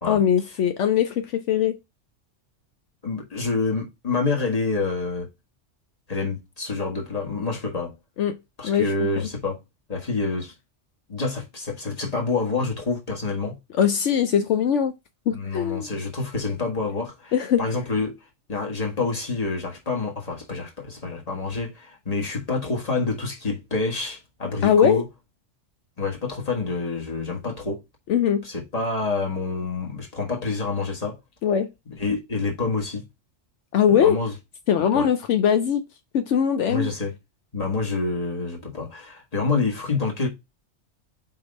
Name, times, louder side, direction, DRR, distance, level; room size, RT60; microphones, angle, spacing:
voice 1, 0.1-1.8 8.2-8.3 8.6-8.9 13.7-14.9 15.3-15.9 17.3-17.7 24.6-25.0 28.1-28.4 31.4-31.7 33.7-34.2 34.7-35.8 36.1-36.9, left 8 dB, 75° left, 1.0 m, -21 dB
voice 2, 3.0-5.3 6.1-7.9 8.6-9.6 9.9-10.5 11.1-13.6 15.3-18.1 18.5-25.0 26.0-27.8 28.4-31.2 32.0-33.0 33.9-34.3 34.9-35.1 36.7-37.1 37.5-40.3, left 4 dB, 30° left, 1.7 m, -27 dB
4.8 x 3.8 x 5.2 m
omnidirectional pair, 1.2 m